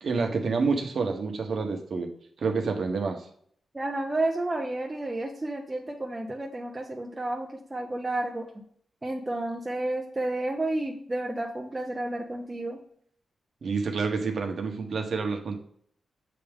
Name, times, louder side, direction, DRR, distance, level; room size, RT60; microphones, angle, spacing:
voice 1, 0.0-2.1 2.4-3.3 13.6-15.6, right 4 dB, 60° right, 4 dB, 1.1 m, -28 dB
voice 2, 3.7-8.5 9.0-12.8, right 2 dB, 20° right, 1 dB, 0.7 m, -31 dB
7.5 x 3.5 x 3.5 m, 0.63 s
cardioid pair, 100°, 0 cm